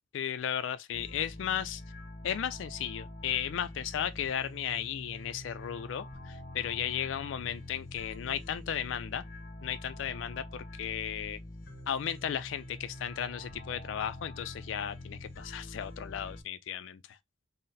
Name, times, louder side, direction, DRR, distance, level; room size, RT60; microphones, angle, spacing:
voice 1, 0.1-1.8 2.2-9.2 9.6-11.4 11.9-17.2, left 9 dB, 85° left, 0.3 m, -35 dB
sound 1, 0.9-16.4, left 1 dB, 55° left, 1.0 m, -45 dB
4.0 x 2.0 x 4.0 m
head